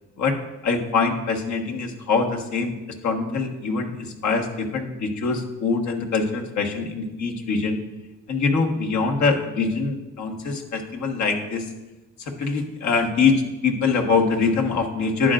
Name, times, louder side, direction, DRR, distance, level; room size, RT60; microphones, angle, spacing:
voice 1, 0.6-2.7 3.0-7.8 8.3-11.6 12.4-15.3, left 4 dB, 65° left, 1 dB, 1.5 m, -23 dB
11.5 x 8.8 x 2.5 m, 1.1 s
cardioid pair, 90°, 30 cm